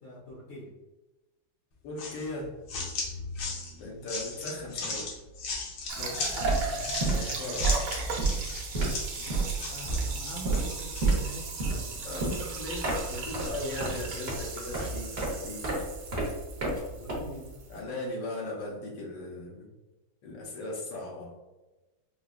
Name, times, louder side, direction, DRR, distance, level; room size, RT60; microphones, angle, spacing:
voice 1, 0.0-0.7 5.9-6.9 9.2-12.2 16.8-17.5, left 1 dB, 55° left, -5 dB, 1.0 m, -45 dB
voice 2, 1.8-2.5 3.8-5.1 6.0-6.3 7.1-7.7 12.0-15.8 17.7-19.7 20.2-21.3, left 2 dB, 70° left, -1 dB, 1.5 m, -38 dB
sound 1, 2.0-11.1, left 3 dB, 90° left, 1.6 m, -37 dB
sound 2, 5.8-6.0 6.3-17.7, right 3 dB, 45° right, 0.8 m, -31 dB
sound 3, 5.9-17.8, right 3 dB, 85° right, 1.6 m, -37 dB
4.7 x 2.2 x 2.3 m, 1.1 s
omnidirectional pair, 2.2 m